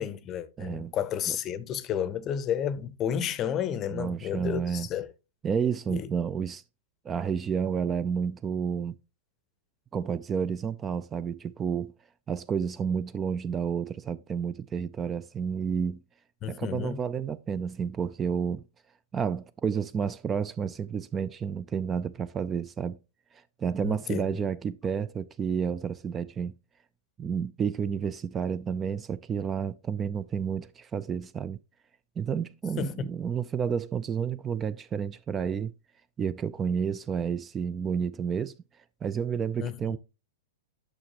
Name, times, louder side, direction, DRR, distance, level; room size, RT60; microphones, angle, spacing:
voice 1, 0.0-5.1 5.9-6.1 16.4-17.0 23.8-24.2 32.8-33.1 39.6-40.0, left 9 dB, 30° left, 0.6 m, -31 dB
voice 2, 0.6-0.9 1.3-1.4 3.9-4.9 5.4-6.6 7.0-8.9 9.9-11.9 12.3-16.0 16.5-18.6 19.1-23.0 23.6-26.5 27.2-31.6 32.2-35.7 36.2-38.5 39.0-40.0, right 7 dB, 20° right, 0.3 m, -30 dB
8.8 x 6.5 x 2.9 m
figure-of-eight pair, 100°, 0 cm